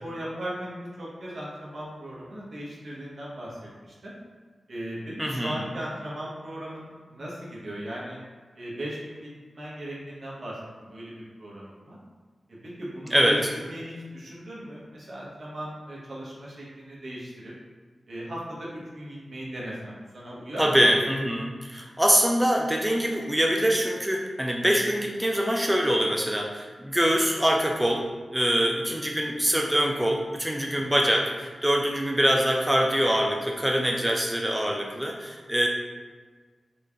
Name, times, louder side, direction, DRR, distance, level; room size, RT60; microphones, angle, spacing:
voice 1, 0.0-3.6 3.9-4.1 4.7-8.2 8.5-12.0 12.6-17.5 18.1-20.8 30.6-30.9, equal, 70° right, -6 dB, 1.1 m, -38 dB
voice 2, 5.2-5.6 13.1-13.5 20.6-35.7, equal, 10° right, 0 dB, 0.4 m, -24 dB
4.1 x 3.1 x 2.4 m, 1.5 s
cardioid pair, 50°, 0 cm